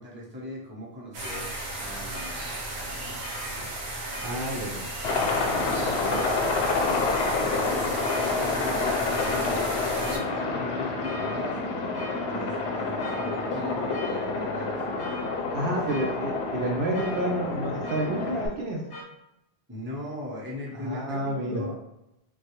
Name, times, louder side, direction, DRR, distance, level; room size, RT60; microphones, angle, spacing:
voice 1, 0.0-3.2 3.5-4.8 5.2-9.7 10.0-11.6 12.3-15.0 15.5-16.1 19.7-21.7, left 1 dB, 15° right, -6 dB, 0.7 m, -40 dB
sound 1, 1.1-10.2, right 1 dB, 90° right, 0.9 m, -35 dB
sound 2, 1.2-19.0, equal, 35° left, 0.4 m, -44 dB
voice 2, 4.2-4.8 15.5-18.8 20.7-21.6, right 1 dB, 65° right, -1 dB, 0.7 m, -29 dB
Aircraft, 5.0-18.5, left 3 dB, 85° left, 0.8 m, -28 dB
3.2 x 2.3 x 2.9 m, 0.86 s
omnidirectional pair, 1.1 m